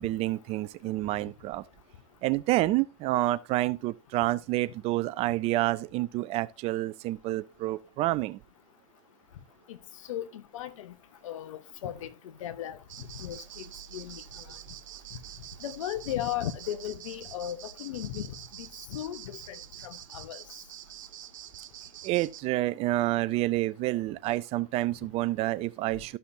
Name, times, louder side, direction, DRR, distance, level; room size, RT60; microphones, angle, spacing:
voice 1, 0.0-1.6 2.2-8.4 22.0-26.2, right 17 dB, 40° right, 0.5 m, -28 dB
voice 2, 10.1-10.9 11.2-12.1 12.4-14.4 15.6-18.3 18.6-20.4, left 11 dB, 75° left, 1.1 m, -36 dB
sound 1, 12.9-22.4, right 12 dB, 75° right, 0.9 m, -46 dB
13.5 x 5.7 x 2.7 m
hypercardioid pair, 120°, 17 cm